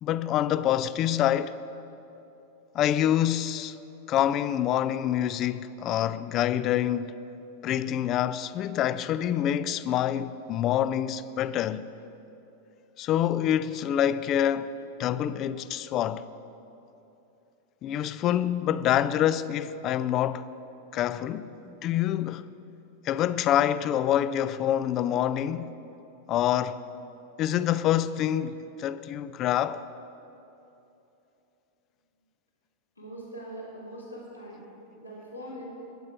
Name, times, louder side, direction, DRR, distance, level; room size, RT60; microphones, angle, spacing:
voice 1, 0.0-1.5 2.7-3.8 4.1-7.2 7.6-11.9 13.0-14.7 15.0-16.3 17.8-20.5 20.9-22.4 23.0-25.7 26.3-26.8 27.4-29.8, left 11 dB, 35° left, 0.4 m, -26 dB
voice 2, 33.0-34.6 35.0-35.6, right 1 dB, 85° left, 2.8 m, -42 dB
21.0 x 8.6 x 4.8 m
figure-of-eight pair, 90°, 0 cm